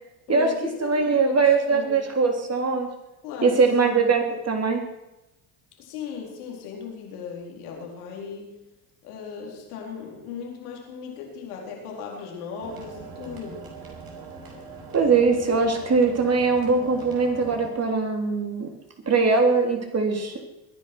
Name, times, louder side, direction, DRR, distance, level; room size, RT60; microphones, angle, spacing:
voice 1, 0.3-2.1 3.2-3.6 5.8-8.6 9.0-13.7, left 6 dB, 85° left, 0 dB, 4.3 m, -36 dB
voice 2, 0.8-2.9 3.4-4.8 14.9-18.7 19.1-20.4, right 4 dB, 35° right, 3 dB, 3.8 m, -21 dB
sound 1, 12.6-17.7, right 4 dB, 55° right, 6.0 m, -41 dB
21.5 x 10.5 x 6.3 m, 0.98 s
hypercardioid pair, 70°, 44 cm